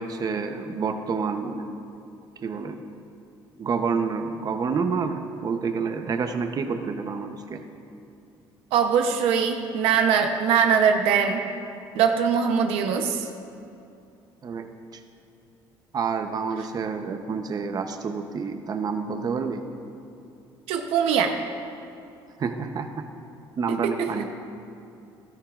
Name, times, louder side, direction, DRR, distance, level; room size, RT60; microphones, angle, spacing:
voice 1, 0.0-1.6 2.4-2.8 3.6-7.6 14.4-15.0 15.9-19.6 22.4-22.9 23.6-24.3, right 5 dB, 40° right, 6 dB, 0.8 m, -28 dB
voice 2, 8.7-11.4 11.9-13.3 20.7-21.3 24.0-24.1, right 7 dB, 80° right, 5 dB, 0.8 m, -21 dB
14.5 x 13.0 x 2.5 m, 2.7 s
cardioid pair, 90°, 10 cm